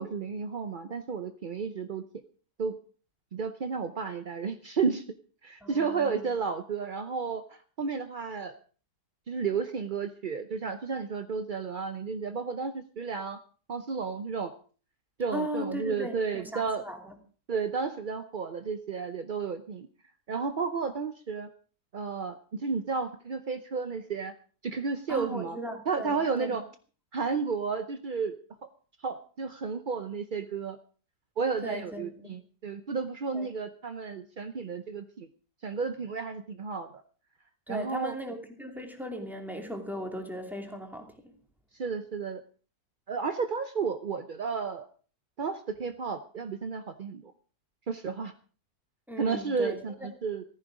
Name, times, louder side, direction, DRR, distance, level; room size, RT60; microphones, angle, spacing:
voice 1, 0.0-2.0 2.6-2.8 3.3-5.0 5.4-8.5 9.3-13.4 13.7-14.5 15.2-16.8 17.5-19.9 20.3-21.5 21.9-24.3 24.6-25.6 25.9-26.6 27.1-28.3 28.6-28.7 29.0-30.8 31.4-35.3 35.6-36.9 37.7-38.2 41.7-42.4 43.1-44.9 45.4-47.3 47.9-48.3 49.2-50.4, right 5 dB, 50° right, 9 dB, 0.6 m, -32 dB
voice 2, 5.6-6.3 15.3-17.1 25.1-26.6 31.6-32.1 33.3-33.5 37.7-41.3 49.1-50.1, equal, ahead, 3 dB, 2.7 m, -37 dB
14.5 x 14.5 x 4.9 m, 0.40 s
omnidirectional pair, 1.8 m